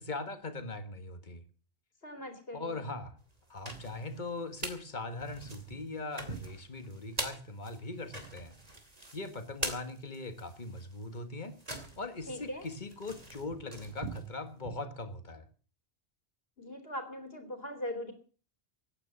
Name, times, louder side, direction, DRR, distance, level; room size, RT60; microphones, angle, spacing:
voice 1, 0.0-1.4 2.5-3.2 3.5-8.5 9.1-11.6 12.0-15.5, left 3 dB, 45° left, 9 dB, 1.9 m, -40 dB
voice 2, 2.0-2.8 12.3-12.7 16.6-18.1, left 1 dB, 65° left, 7 dB, 3.4 m, -40 dB
sound 1, 3.3-4.8 5.2-14.7, right 2 dB, 40° right, 2.9 m, -43 dB
16.5 x 9.9 x 7.5 m, 0.41 s
omnidirectional pair, 1.1 m